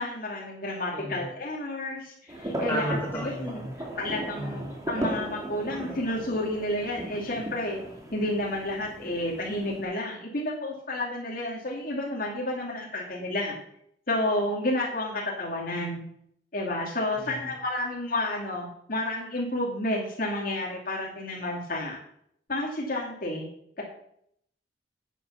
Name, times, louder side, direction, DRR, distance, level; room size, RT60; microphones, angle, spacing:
voice 1, 0.0-3.6 4.0-7.8 8.1-13.6 14.1-16.0 16.5-22.0 22.5-23.5 23.8-23.9, left 1 dB, 50° left, -2 dB, 2.5 m, -31 dB
voice 2, 0.9-1.3 2.7-3.7 4.3-4.7 17.2-17.5, equal, 10° left, -5 dB, 3.9 m, -33 dB
sound 1, 2.3-9.8, right 1 dB, 20° right, 2.2 m, -37 dB
10.0 x 9.2 x 5.8 m, 0.70 s
head